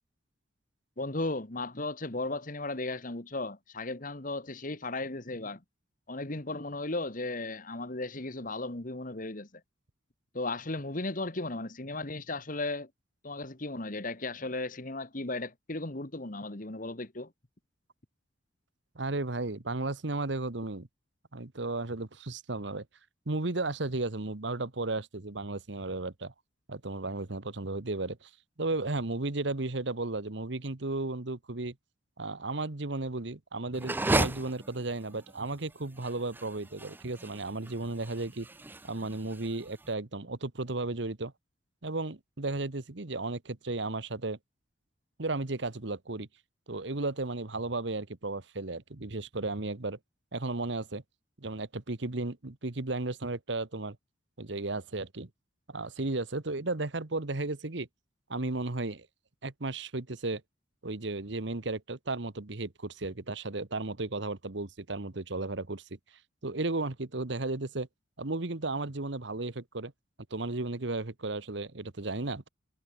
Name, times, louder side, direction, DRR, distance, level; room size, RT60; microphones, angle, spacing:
voice 1, 1.0-5.6 6.1-9.5 10.3-12.9 13.2-17.3, left 2 dB, 45° left, 1.8 m, -35 dB
voice 2, 18.9-20.9 21.3-22.8 23.3-26.3 26.7-28.3 28.6-31.7 32.2-38.5 38.9-41.3 41.8-44.4 45.2-46.3 46.7-50.0 50.3-51.0 51.4-54.0 54.4-55.3 55.7-57.9 58.3-59.1 59.4-60.4 60.8-65.8 66.4-67.9 68.2-69.9 70.3-72.5, right 2 dB, 65° right, 1.4 m, -34 dB
sound 1, 33.7-39.9, right 2 dB, 10° right, 0.4 m, -34 dB
head